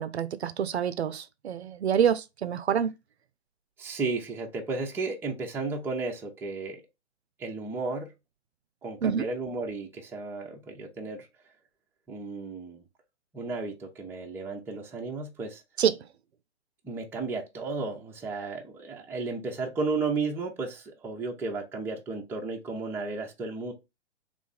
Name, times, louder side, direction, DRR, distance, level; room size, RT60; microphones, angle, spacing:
voice 1, 0.0-2.9 9.0-9.3 15.8-16.0, right 8 dB, 65° right, 0.6 m, -27 dB
voice 2, 3.8-6.8 7.4-8.1 8.8-11.3 12.1-12.8 13.3-15.6 16.8-23.7, right 3 dB, 5° right, 0.7 m, -33 dB
3.4 x 3.1 x 4.1 m
hypercardioid pair, 130°, 35 cm